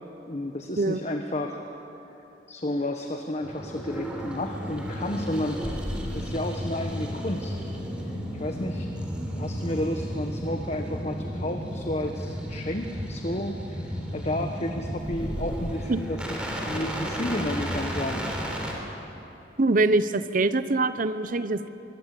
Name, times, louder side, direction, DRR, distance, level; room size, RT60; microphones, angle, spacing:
voice 1, 0.3-1.6 2.5-5.6 6.1-7.6 8.3-8.9 9.4-16.2 16.6-18.3, left 1 dB, 40° left, 4 dB, 1.3 m, -31 dB
sound 1, 3.4-18.7, equal, 5° right, 3.6 m, -33 dB
voice 2, 19.6-21.7, right 2 dB, 50° right, 13 dB, 0.8 m, -24 dB
23.5 x 19.5 x 8.4 m, 3.0 s
head